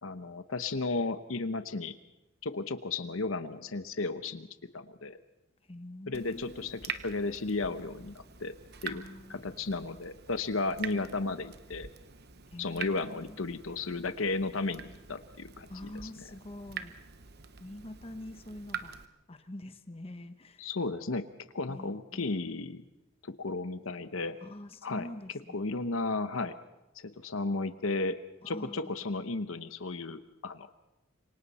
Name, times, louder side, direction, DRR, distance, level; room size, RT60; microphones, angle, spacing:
voice 1, 0.0-2.0 2.4-4.5 4.7-5.2 6.1-8.5 8.8-9.0 9.3-11.9 12.6-16.2 20.6-21.2 21.5-22.8 23.2-24.4 24.8-25.1 25.5-26.6 27.0-28.2 28.5-30.7, left 3 dB, 75° left, 10 dB, 1.0 m, -34 dB
voice 2, 5.7-6.7 8.9-9.4 11.1-11.4 12.5-13.4 15.7-16.9 17.6-19.0 19.3-20.7 21.7-22.5 24.4-25.6 25.9-26.0 28.4-29.1, left 1 dB, 30° left, 8 dB, 1.0 m, -45 dB
Water tap faucet / Drip, 6.1-19.1, right 7 dB, 50° right, 1.1 m, -45 dB
27.0 x 24.0 x 4.3 m, 0.97 s
head